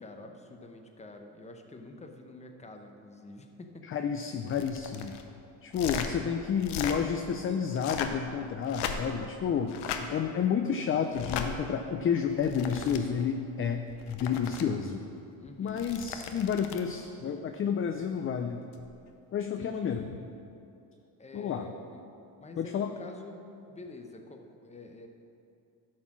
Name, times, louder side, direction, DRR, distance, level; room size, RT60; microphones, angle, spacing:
voice 1, 0.0-3.9 9.8-9.9 15.4-15.9 19.6-20.0 21.2-22.0 22.4-23.4 23.7-25.1, left 2 dB, 15° left, 4 dB, 0.8 m, -47 dB
voice 2, 3.9-5.2 5.6-9.7 10.1-15.1 15.6-18.6 19.3-20.1 21.3-21.7 22.6-22.9, left 7 dB, 35° left, 6 dB, 0.4 m, -30 dB
sound 1, 4.5-5.2 5.7-6.1 6.6-7.0 7.7-8.2 8.6-9.2 9.7-10.0 11.1-11.5 12.3-13.0 13.9-14.6 15.7-16.9 18.7-18.9, left 8 dB, 85° left, 0.8 m, -37 dB
11.5 x 4.3 x 6.0 m, 2.7 s
cardioid pair, 100°, 40 cm